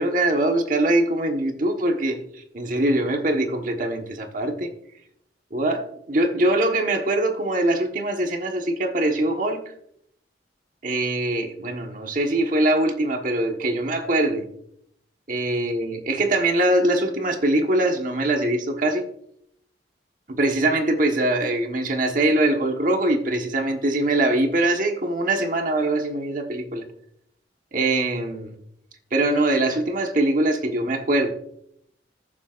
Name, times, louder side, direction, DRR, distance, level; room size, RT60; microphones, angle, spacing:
voice 1, 0.0-2.2 2.5-4.7 5.5-9.6 10.8-14.4 15.3-19.0 20.3-26.8 27.7-28.5 29.1-31.3, right 1 dB, 45° right, 4 dB, 1.3 m, -22 dB
20.5 x 7.4 x 2.5 m, 0.72 s
head